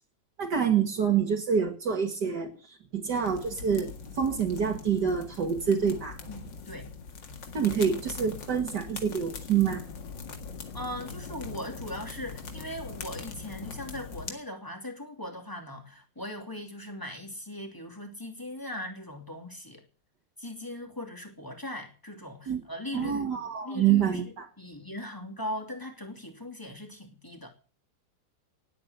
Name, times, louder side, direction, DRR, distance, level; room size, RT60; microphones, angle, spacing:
voice 1, 0.4-6.2 7.5-9.8 22.5-22.6 22.9-24.5, right 7 dB, 65° right, 2.5 m, -27 dB
sound 1, 3.2-14.3, left 5 dB, 85° left, 2.6 m, -42 dB
voice 2, 6.3-6.9 10.7-19.8 20.4-23.3 23.6-27.5, left 1 dB, 10° left, 2.8 m, -39 dB
18.5 x 8.5 x 8.1 m
omnidirectional pair, 1.9 m